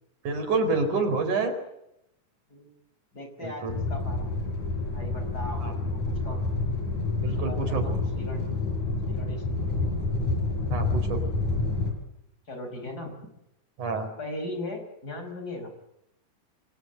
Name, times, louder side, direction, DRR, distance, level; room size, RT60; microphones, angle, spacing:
voice 1, 0.2-1.5 3.4-3.7 5.6-5.7 7.2-7.8 10.7-11.2 13.8-14.1, right 3 dB, 70° right, 7 dB, 5.8 m, -27 dB
voice 2, 3.1-4.3 4.9-6.4 7.2-8.5 9.2-9.9 12.5-13.1 14.2-15.7, left 1 dB, 30° left, 5 dB, 5.7 m, -38 dB
sound 1, 3.7-11.9, left 3 dB, 70° left, 6.4 m, -28 dB
28.0 x 24.0 x 7.8 m, 0.83 s
omnidirectional pair, 3.6 m